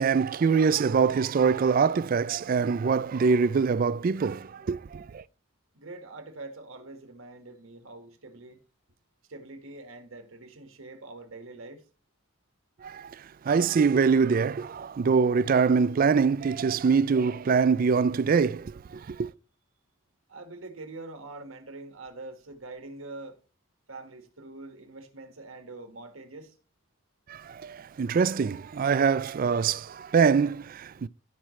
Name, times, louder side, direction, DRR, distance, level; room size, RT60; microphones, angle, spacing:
voice 1, 0.0-5.2 12.8-13.2 13.5-19.3 27.3-31.1, right 5 dB, 40° right, 0.3 m, -24 dB
voice 2, 5.7-8.6 9.3-11.8 20.3-23.4 23.9-26.5, right 2 dB, 80° right, 1.7 m, -44 dB
15.0 x 6.0 x 3.2 m
head